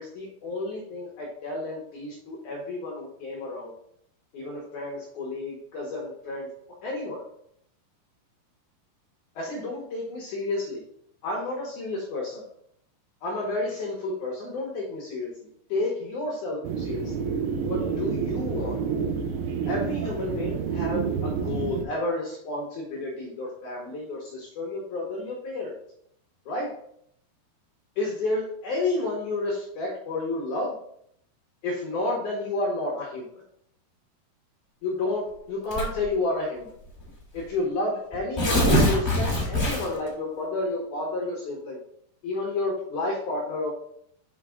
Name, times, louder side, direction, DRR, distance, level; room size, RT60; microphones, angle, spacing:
voice 1, 0.0-3.7 4.3-6.5 6.8-7.2 9.4-10.8 11.2-12.4 13.2-15.3 15.7-17.1 17.7-18.8 19.7-25.7 26.5-26.7 28.0-30.7 31.6-33.3 34.8-36.7 37.3-41.8 42.2-43.7, left 2 dB, 70° left, -1 dB, 1.9 m, -31 dB
sound 1, 16.6-21.9, right 6 dB, 75° right, 2.6 m, -29 dB
Tearing, 35.7-36.1 37.0-37.1 37.4-37.5 38.1-40.1, equal, 15° left, 1.0 m, -23 dB
6.2 x 5.5 x 3.6 m, 0.71 s
omnidirectional pair, 4.9 m